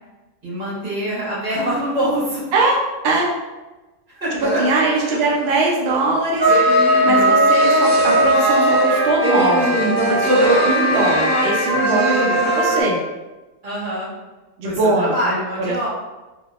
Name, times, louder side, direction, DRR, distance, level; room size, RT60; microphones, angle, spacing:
voice 1, 0.4-2.5 4.1-4.3 5.1-5.2 12.1-12.4 13.6-14.1 14.6-15.9, equal, 40° right, -10 dB, 1.9 m, -25 dB
sound 1, 4.4-5.2 6.4-12.8, right 1 dB, 65° right, 1.6 m, -17 dB
voice 2, 4.4-13.0 14.6-15.4 15.7-15.9, right 2 dB, 85° right, -2 dB, 0.5 m, -21 dB
3.5 x 2.7 x 2.3 m, 1.1 s
omnidirectional pair, 1.7 m